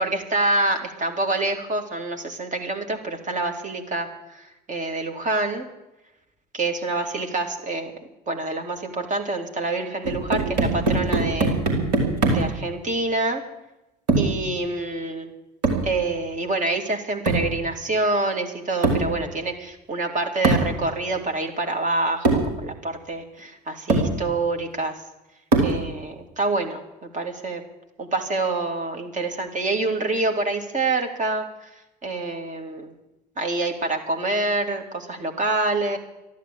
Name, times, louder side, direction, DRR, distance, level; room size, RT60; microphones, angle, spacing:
voice 1, 0.0-5.7 6.5-7.9 8.3-11.6 12.3-13.4 14.2-15.3 15.8-22.3 22.6-25.0 25.6-26.8 27.1-27.6 28.0-31.7 32.0-32.9 33.4-36.0, right 2 dB, 40° right, 4 dB, 3.2 m, -26 dB
sound 1, 10.0-12.6 14.1-14.4 15.6-15.9 17.3-17.6 18.8-19.1 20.4-20.8 21.7-21.8 22.2-22.5 23.4-23.5 23.9-24.2 25.5-25.9, right 2 dB, 75° right, 3.9 m, -21 dB
13.5 x 11.5 x 8.9 m, 0.97 s
figure-of-eight pair, 55°, 20 cm